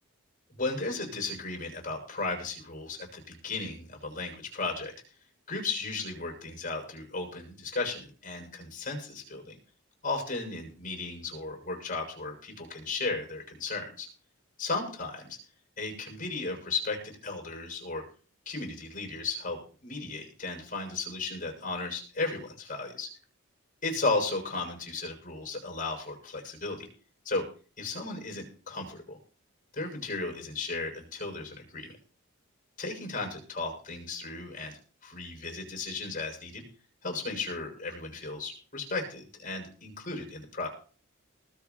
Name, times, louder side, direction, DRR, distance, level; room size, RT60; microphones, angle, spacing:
voice 1, 0.5-4.9 5.5-9.6 10.0-14.1 14.6-15.4 15.8-18.0 18.4-23.1 23.8-26.9 27.2-27.4 27.8-29.2 29.7-32.0 32.8-34.7 35.0-36.6 37.0-40.7, left 3 dB, 40° left, 3 dB, 6.9 m, -35 dB
20.0 x 8.4 x 4.7 m, 0.39 s
head